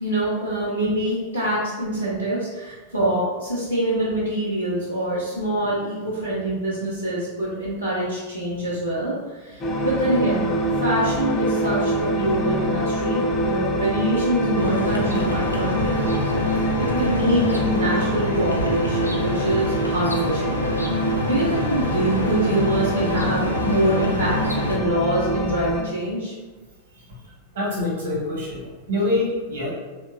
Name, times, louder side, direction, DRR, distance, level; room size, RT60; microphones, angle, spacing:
voice 1, 0.0-10.5 10.8-16.1 16.5-20.6 20.9-26.3, right 1 dB, 85° right, -9 dB, 0.5 m, -25 dB
the-middle-realm, 9.6-25.8, equal, 25° left, 0.4 m, -25 dB
sound 1, 14.5-24.8, equal, 90° left, 0.3 m, -27 dB
voice 2, 27.5-29.7, left 2 dB, 60° right, -4 dB, 1.0 m, -25 dB
2.8 x 2.1 x 2.5 m, 1.3 s
figure-of-eight pair, 90°, 0 cm